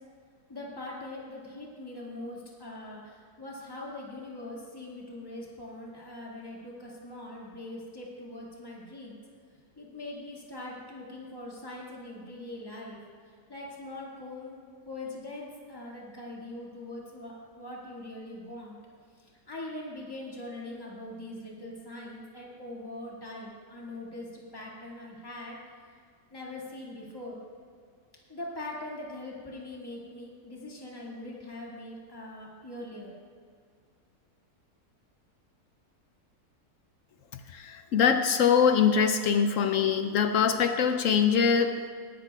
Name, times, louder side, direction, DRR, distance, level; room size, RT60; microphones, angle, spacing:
voice 1, 0.5-9.2 9.8-13.0 13.5-14.6 14.9-18.8 19.2-25.6 26.3-27.4 28.3-33.1, left 1 dB, 15° left, -4 dB, 1.9 m, -42 dB
voice 2, 37.5-41.9, left 7 dB, 70° left, 8 dB, 0.8 m, -23 dB
19.0 x 11.5 x 2.3 m, 2.2 s
omnidirectional pair, 1.7 m